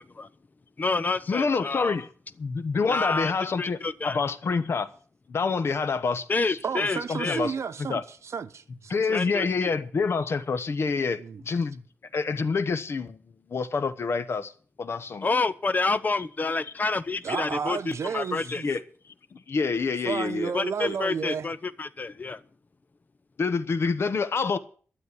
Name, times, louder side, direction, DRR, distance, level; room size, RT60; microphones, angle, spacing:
voice 1, 0.8-2.0 2.9-3.3 3.6-4.2 6.3-7.4 9.1-9.7 15.2-18.6 20.5-22.4, left 3 dB, 35° left, 0.7 m, -28 dB
voice 2, 1.3-2.1 2.4-4.9 5.3-6.6 7.1-7.5 7.9-8.0 8.9-11.8 12.1-13.2 13.5-14.5 14.8-15.3 18.4-18.8 19.3-20.5 20.8-21.0 23.4-24.6, left 4 dB, 60° left, 1.1 m, -27 dB
voice 3, 6.6-9.2 11.2-11.4 17.2-18.7 20.1-21.5, right 6 dB, 75° right, 0.9 m, -32 dB
12.5 x 7.6 x 8.3 m
wide cardioid pair, 130°, 5 cm